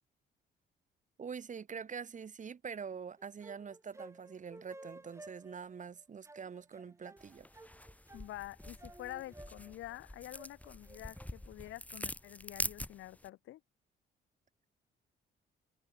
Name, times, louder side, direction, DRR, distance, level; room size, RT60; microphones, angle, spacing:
voice 1, 1.2-7.5, right 6 dB, 40° right, 1.3 m, -45 dB
sound 1, 3.2-11.7, right 2 dB, 15° right, 2.5 m, -55 dB
sound 2, 7.2-13.3, left 1 dB, 5° left, 2.9 m, -45 dB
voice 2, 8.1-13.6, left 15 dB, 85° left, 1.8 m, -47 dB
cardioid pair, 90°, 20 cm